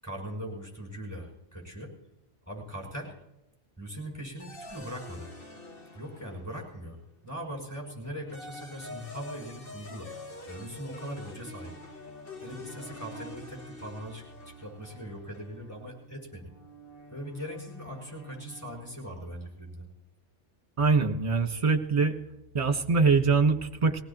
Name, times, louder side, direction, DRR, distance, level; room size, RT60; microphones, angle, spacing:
voice 1, 0.0-1.9 2.5-3.1 3.8-5.3 5.9-10.1 10.5-11.7 12.4-16.5 17.1-19.8, equal, 15° left, -2 dB, 6.3 m, -40 dB
sound 1, 4.4-7.0 8.0-19.2, left 1 dB, 55° left, 1.8 m, -46 dB
voice 2, 20.8-22.2 22.5-24.0, right 4 dB, 30° right, 5 dB, 1.3 m, -23 dB
21.0 x 18.0 x 3.0 m, 0.94 s
omnidirectional pair, 1.2 m